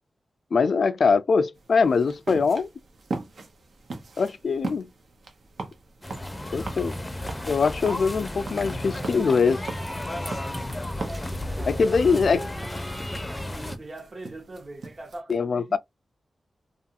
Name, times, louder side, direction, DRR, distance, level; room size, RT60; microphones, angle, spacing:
voice 1, 0.5-2.7 4.2-4.9 6.5-7.0 7.5-9.7 11.7-12.4 15.3-15.8, left 5 dB, 70° left, 0.3 m, -22 dB
sound 1, 1.5-15.2, right 3 dB, 75° right, 0.7 m, -40 dB
sound 2, 6.0-13.8, left 1 dB, 15° left, 0.5 m, -33 dB
voice 2, 11.0-12.6 13.6-15.8, right 2 dB, 45° right, 0.8 m, -41 dB
2.5 x 2.3 x 2.7 m
wide cardioid pair, 80°, 0 cm